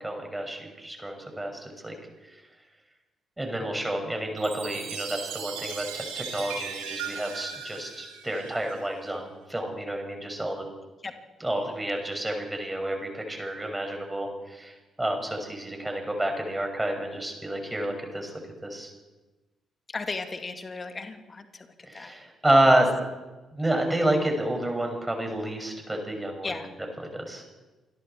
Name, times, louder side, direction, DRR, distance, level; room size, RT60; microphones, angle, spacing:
voice 1, 0.0-1.9 2.2-2.4 3.4-10.6 11.4-18.3 18.6-18.9 21.9-22.9 23.5-26.6 27.0-27.4, right 1 dB, 15° right, 3 dB, 6.5 m, -29 dB
Chime, 4.4-8.9, right 6 dB, 70° right, 3.7 m, -37 dB
voice 2, 19.9-22.1 26.4-26.7, left 3 dB, 35° left, 7 dB, 2.2 m, -36 dB
28.0 x 22.0 x 4.6 m, 1.2 s
figure-of-eight pair, 40°, 0 cm